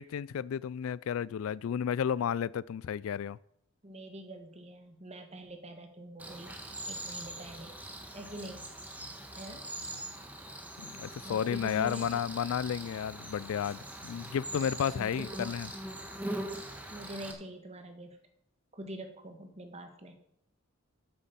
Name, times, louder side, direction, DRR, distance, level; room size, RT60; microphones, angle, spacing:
voice 1, 0.0-3.4 10.8-15.7, left 8 dB, 75° left, 0.3 m, -32 dB
voice 2, 3.8-7.7 8.1-8.7 9.4-9.6 11.2-12.2 14.9-15.2 16.9-18.2 18.7-20.2, right 1 dB, 30° right, 1.5 m, -45 dB
Cricket, 6.2-17.3, right 1 dB, 5° right, 1.3 m, -42 dB
8.3 x 7.3 x 6.9 m
head